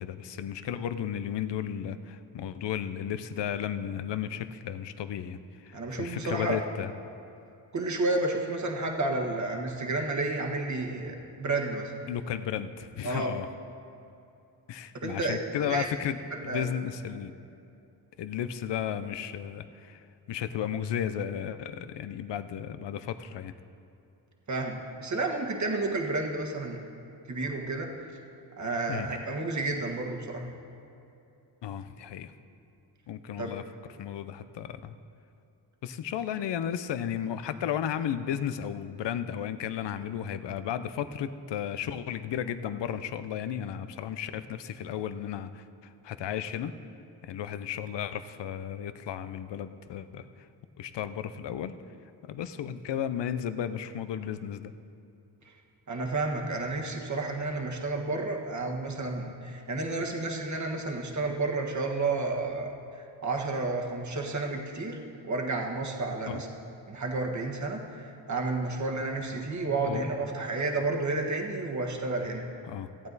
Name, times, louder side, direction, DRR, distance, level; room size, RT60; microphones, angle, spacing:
voice 1, 0.0-6.9 12.1-13.5 14.7-17.3 18.2-20.0 20.3-23.5 28.9-29.1 31.6-32.3 33.1-33.6 34.0-34.9 35.8-45.6 46.0-46.7 47.2-50.3 50.8-51.7 52.3-54.7 66.3-66.4 69.9-70.1 72.7-72.9, left 9 dB, 70° left, 12 dB, 0.7 m, -34 dB
voice 2, 5.7-6.6 7.7-11.9 13.0-13.3 15.0-15.4 15.6-15.9 16.3-16.7 24.5-26.8 27.3-27.9 28.6-30.5 33.4-33.5 55.9-65.0 65.3-66.5 66.9-72.5, right 2 dB, 40° right, 2 dB, 1.5 m, -31 dB
16.0 x 8.7 x 4.1 m, 2.7 s
cardioid pair, 70°, 44 cm